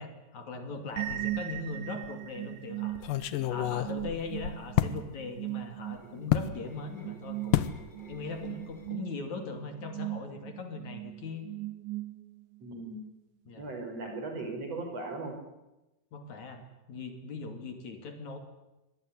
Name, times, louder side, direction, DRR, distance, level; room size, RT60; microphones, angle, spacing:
voice 1, 0.0-3.0 3.4-7.7 8.1-11.5 13.5-13.7 16.1-18.4, left 3 dB, 60° left, 6 dB, 3.9 m, -40 dB
sound 1, 1.0-12.6, right 16 dB, 70° right, 2.8 m, -39 dB
sound 2, 1.1-1.7 2.0-2.1 3.0-5.0 6.3-6.5 7.5-7.8 8.1-8.5 8.7-8.9, left 13 dB, 80° left, 2.7 m, -29 dB
sound 3, 5.8-9.2 9.6-9.9, equal, 15° left, 3.2 m, -55 dB
voice 2, 12.6-13.0 13.6-15.3, right 3 dB, 50° right, 4 dB, 5.7 m, -38 dB
25.0 x 19.0 x 9.9 m, 0.98 s
omnidirectional pair, 3.8 m